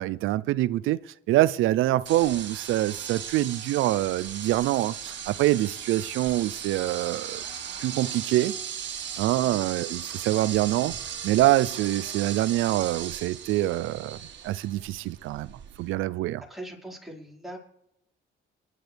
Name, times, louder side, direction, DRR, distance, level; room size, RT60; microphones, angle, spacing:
voice 1, 0.0-7.4 7.8-8.5 9.2-11.0 11.2-14.2 14.4-15.5 15.8-16.4, right 15 dB, 90° right, 0.5 m, -25 dB
sound 1, 2.1-15.9, right 8 dB, 65° right, 1.8 m, -37 dB
voice 2, 16.4-17.6, right 1 dB, ahead, 4.9 m, -41 dB
26.5 x 11.0 x 3.4 m
cardioid pair, 90°, 20 cm